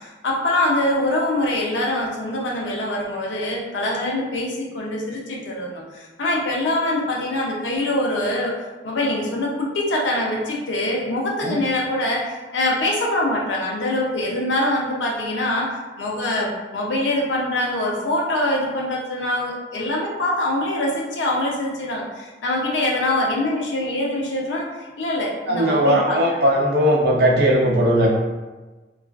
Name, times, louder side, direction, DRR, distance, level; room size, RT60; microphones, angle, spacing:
voice 1, 0.0-8.6 8.8-24.7 25.0-26.4, left 1 dB, 85° left, -2 dB, 0.6 m, -24 dB
voice 2, 25.5-28.1, equal, 60° right, -2 dB, 0.5 m, -18 dB
2.4 x 2.3 x 2.3 m, 1.2 s
head